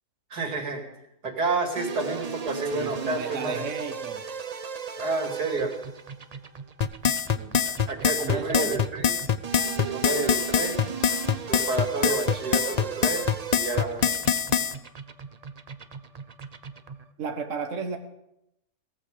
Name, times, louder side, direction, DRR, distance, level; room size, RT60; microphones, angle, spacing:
voice 1, 0.3-0.8 1.2-3.7 5.0-5.8 7.7-9.3 9.7-10.8 11.5-14.1, right 3 dB, 90° right, 2 dB, 3.1 m, -30 dB
sound 1, 1.8-17.1, right 6 dB, 35° right, 0.6 m, -38 dB
voice 2, 2.7-4.2 7.3-7.6 8.2-8.8 17.2-18.0, right 5 dB, 55° right, 5 dB, 1.5 m, -34 dB
sound 2, 6.8-14.7, left 7 dB, 80° left, 0.3 m, -24 dB
17.5 x 14.5 x 5.0 m, 0.83 s
omnidirectional pair, 1.6 m